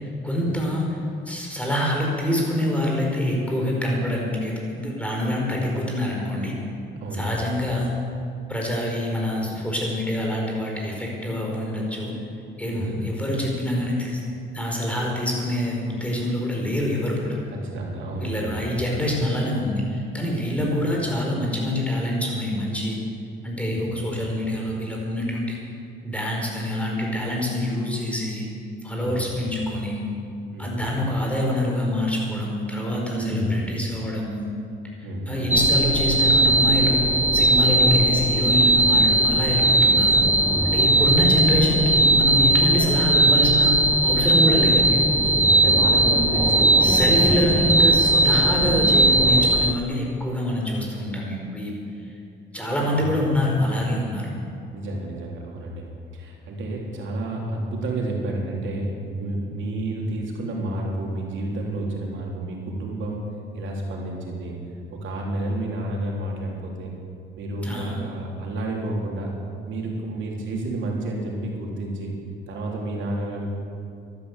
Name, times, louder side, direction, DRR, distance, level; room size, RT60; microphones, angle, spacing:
voice 1, 0.2-6.5 7.1-7.9 8.5-12.1 12.6-14.2 14.5-17.3 18.2-23.0 23.4-25.6 26.0-28.4 28.8-30.0 30.6-34.5 35.3-37.0 37.3-40.2 40.6-44.9 46.8-51.7 52.5-54.3 67.6-68.0, left 1 dB, 5° left, -2 dB, 4.8 m, -25 dB
voice 2, 7.0-7.4 12.7-13.0 17.5-18.8 20.5-20.6 23.7-23.9 29.0-29.3 30.5-30.8 33.1-33.5 35.0-35.6 40.0-41.2 45.1-48.4 52.9-53.1 54.7-55.8 56.1-63.3 63.5-64.6 64.9-66.9 67.4-69.3 69.7-72.1 72.5-73.5, right 1 dB, 75° right, -1 dB, 3.6 m, -30 dB
sound 1, 35.5-49.7, right 1 dB, 10° right, 0.6 m, -18 dB
12.5 x 12.5 x 8.2 m, 2.5 s
cardioid pair, 90°, 20 cm